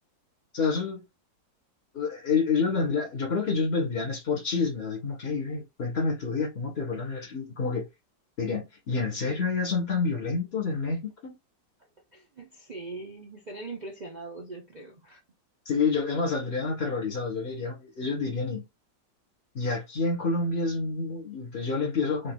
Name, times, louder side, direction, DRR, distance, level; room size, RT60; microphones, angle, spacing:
voice 1, 0.5-1.0 1.9-7.9 8.4-11.3 15.6-18.6 19.5-22.3, left 4 dB, 35° left, 1.5 m, -28 dB
voice 2, 12.1-15.2, right 3 dB, 70° right, 0.4 m, -41 dB
3.8 x 3.8 x 2.3 m
omnidirectional pair, 2.0 m